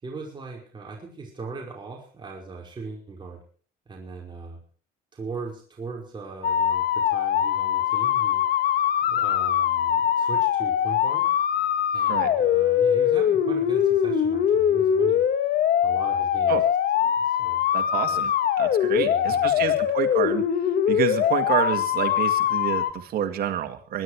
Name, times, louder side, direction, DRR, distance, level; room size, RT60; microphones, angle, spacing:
voice 1, 0.0-3.4 3.9-4.6 5.1-8.5 9.0-11.3 11.9-15.2 15.8-16.6 17.2-17.7 18.1-18.3 19.0-19.9, right 4 dB, 25° right, -1 dB, 5.2 m, -39 dB
sound 1, 6.4-22.9, left 9 dB, 60° left, 1.7 m, -22 dB
voice 2, 17.7-18.3 18.6-20.4 20.9-24.0, right 10 dB, 65° right, 6 dB, 2.2 m, -28 dB
23.5 x 10.0 x 4.9 m, 0.42 s
cardioid pair, 110°, 17 cm